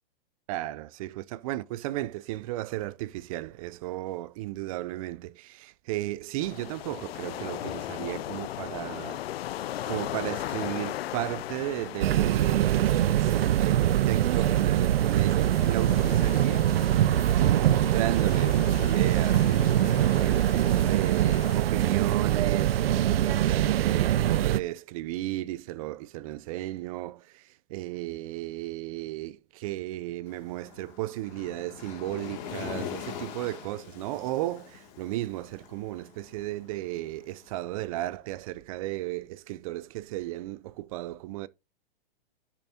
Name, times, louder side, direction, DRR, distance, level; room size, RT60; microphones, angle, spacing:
voice 1, 0.5-9.2 9.8-16.8 17.4-41.5, right 16 dB, 35° right, 0.5 m, -35 dB
sound 1, 6.4-21.6, left 13 dB, 85° left, 0.5 m, -38 dB
sound 2, 12.0-24.6, right 12 dB, 80° right, 0.6 m, -23 dB
Waves surf, 30.3-37.4, left 8 dB, 45° left, 2.3 m, -42 dB
10.5 x 7.1 x 2.8 m
hypercardioid pair, 145°, 30 cm